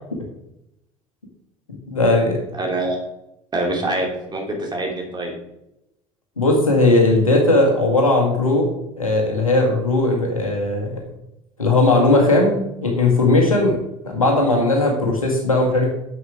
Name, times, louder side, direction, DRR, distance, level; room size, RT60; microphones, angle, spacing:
voice 1, 1.9-2.4 6.4-11.0 11.6-13.8 14.0-15.9, left 2 dB, 85° left, 0 dB, 1.8 m, -18 dB
voice 2, 2.5-3.0 3.5-5.3, right 1 dB, 25° right, 0 dB, 3.1 m, -25 dB
9.4 x 7.7 x 3.6 m, 0.84 s
figure-of-eight pair, 60°, 17 cm